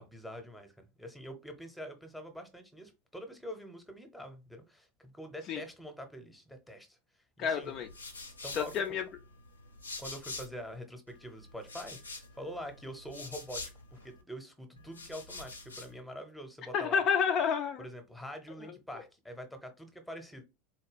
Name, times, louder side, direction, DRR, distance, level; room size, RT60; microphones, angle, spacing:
voice 1, 0.0-7.0 7.4-7.8 8.4-8.7 10.0-12.0 12.4-13.6 13.9-17.0 17.8-20.4, equal, 5° left, 0.8 m, -45 dB
voice 2, 7.4-7.9 8.5-9.0 16.7-17.9, left 7 dB, 40° left, 0.4 m, -29 dB
sound 1, 7.6-10.8 11.1-14.2 14.8-16.0, left 3 dB, 80° left, 0.7 m, -46 dB
4.0 x 2.3 x 3.3 m
figure-of-eight pair, 80°, 0 cm